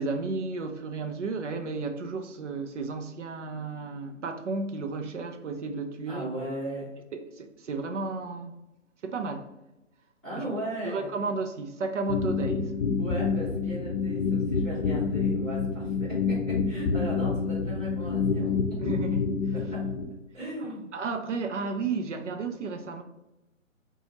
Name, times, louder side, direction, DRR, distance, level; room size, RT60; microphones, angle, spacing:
voice 1, 0.0-6.3 7.1-8.6 9.0-9.5 10.3-10.5 10.8-12.8 18.8-19.3 20.6-23.0, right 4 dB, 65° right, 0.5 m, -33 dB
voice 2, 6.1-6.9 10.2-11.1 13.0-18.5 19.7-19.8 20.3-20.8, right 1 dB, ahead, 0.5 m, -37 dB
sound 1, 12.1-20.0, left 5 dB, 50° left, 0.6 m, -28 dB
4.1 x 2.3 x 2.8 m
figure-of-eight pair, 140°, 40 cm